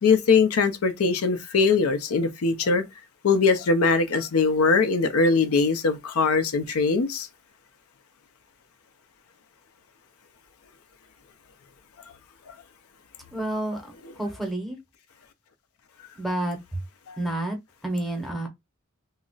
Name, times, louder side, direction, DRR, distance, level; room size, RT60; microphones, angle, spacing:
voice 1, 0.0-2.8 3.2-7.3 12.5-12.6 17.1-17.2, left 4 dB, 85° left, 0.5 m, -21 dB
voice 2, 13.3-14.8 16.2-16.6 17.2-17.6 17.8-18.5, right 1 dB, ahead, 0.7 m, -29 dB
2.3 x 2.0 x 3.8 m
head